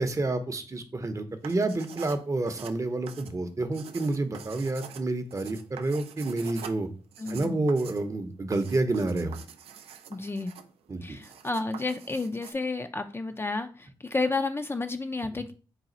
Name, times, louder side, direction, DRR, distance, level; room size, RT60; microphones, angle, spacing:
voice 1, 0.0-6.9 7.3-9.4 10.9-11.2, right 2 dB, 30° right, 9 dB, 0.7 m, -29 dB
sound 1, 1.3-12.5, right 7 dB, 80° right, 0.4 m, -46 dB
voice 2, 7.2-7.6 10.1-10.5 11.0-15.5, left 3 dB, 25° left, 8 dB, 0.4 m, -31 dB
4.1 x 2.3 x 3.9 m, 0.37 s
supercardioid pair, 50°, 10 cm